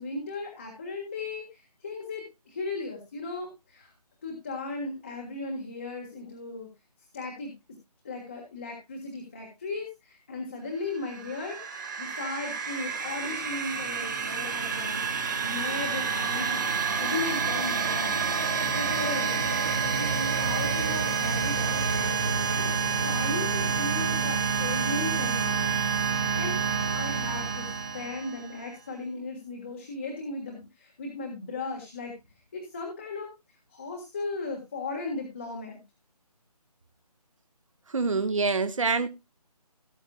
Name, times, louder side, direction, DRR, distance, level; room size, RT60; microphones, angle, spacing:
voice 1, 0.0-3.9 4.2-6.7 7.1-7.5 8.0-11.6 12.0-18.2 18.7-19.4 19.8-25.7 26.1-26.6 26.9-32.1 32.5-33.3 33.7-35.8, left 3 dB, 20° left, 1.6 m, -37 dB
sound 1, 11.1-28.7, right 6 dB, 30° right, 2.1 m, -28 dB
voice 2, 37.9-39.1, right 4 dB, 55° right, 1.2 m, -25 dB
18.0 x 7.8 x 2.3 m
figure-of-eight pair, 175°, 20 cm